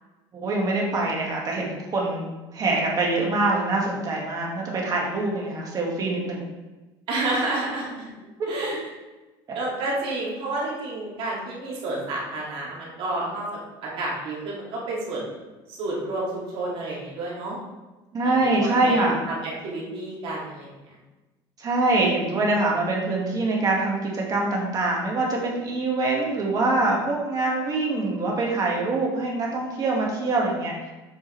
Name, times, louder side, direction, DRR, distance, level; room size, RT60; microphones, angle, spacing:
voice 1, 0.3-6.5 8.4-8.7 18.1-19.2 21.6-30.9, right 2 dB, 35° right, -2 dB, 1.9 m, -24 dB
voice 2, 7.1-8.1 8.5-8.8 9.5-17.6 18.2-20.7, right 2 dB, 55° right, -5 dB, 2.5 m, -30 dB
7.9 x 5.4 x 3.4 m, 1.1 s
cardioid pair, 125°, 11 cm